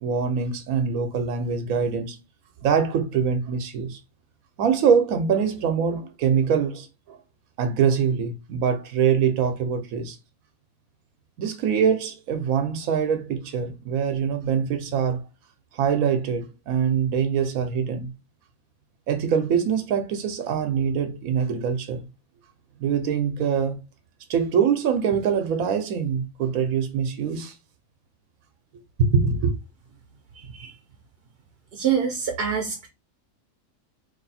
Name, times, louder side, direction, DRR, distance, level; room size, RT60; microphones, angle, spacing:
voice 1, 0.0-2.2 2.6-4.0 4.6-7.2 7.6-10.2 11.4-15.2 15.7-18.1 19.1-22.1 22.8-23.8 24.3-27.5 29.0-29.5, right 7 dB, 90° right, 1.1 m, -24 dB
voice 2, 30.4-30.7 31.7-32.9, right 7 dB, 55° right, 0.8 m, -26 dB
3.3 x 2.6 x 4.1 m
omnidirectional pair, 1.4 m